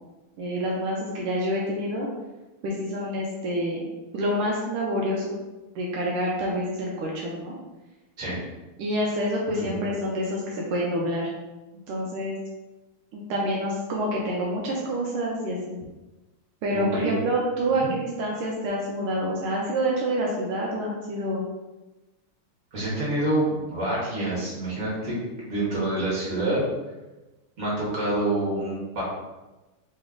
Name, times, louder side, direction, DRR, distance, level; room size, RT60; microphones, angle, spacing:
voice 1, 0.4-2.1 2.6-3.8 4.1-5.3 5.7-7.5 8.8-11.3 11.9-12.4 13.1-15.8 16.6-21.4, equal, 80° right, -3 dB, 1.6 m, -27 dB
voice 2, 16.7-17.2 17.8-17.9 22.7-25.2 25.5-26.6 27.6-29.0, right 1 dB, 40° right, -6 dB, 1.9 m, -27 dB
3.9 x 3.2 x 3.6 m, 1.1 s
omnidirectional pair, 2.4 m